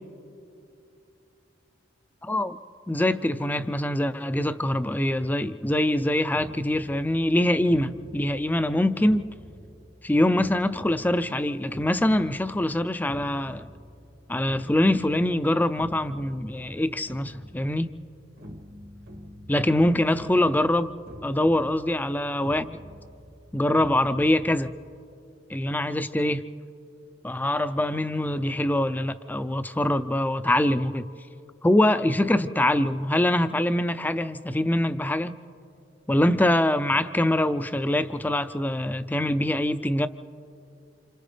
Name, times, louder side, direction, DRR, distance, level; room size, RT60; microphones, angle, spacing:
voice 1, 2.2-2.6 2.9-9.3 10.0-13.7 14.3-17.9 19.5-20.9 21.2-22.7 23.5-24.7 25.5-26.5 27.2-31.1 31.6-35.4 36.1-40.1, left 1 dB, 10° left, 0.4 m, -24 dB
sound 1, 6.1-25.0, equal, 60° right, 1.3 m, -46 dB
29.0 x 27.5 x 3.3 m
head